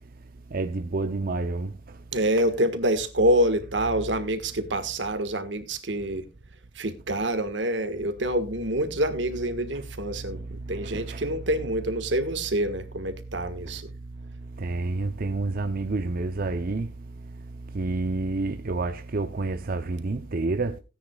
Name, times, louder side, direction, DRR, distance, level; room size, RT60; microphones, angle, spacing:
voice 1, 0.5-2.0 9.7-9.8 10.1-11.3 13.7-13.8 14.2-16.9 17.2-20.8, right 3 dB, 50° right, 0.6 m, -30 dB
voice 2, 2.1-6.2 6.8-10.4 10.7-13.8, right 1 dB, 80° right, 1.6 m, -26 dB
17.0 x 9.9 x 2.3 m
head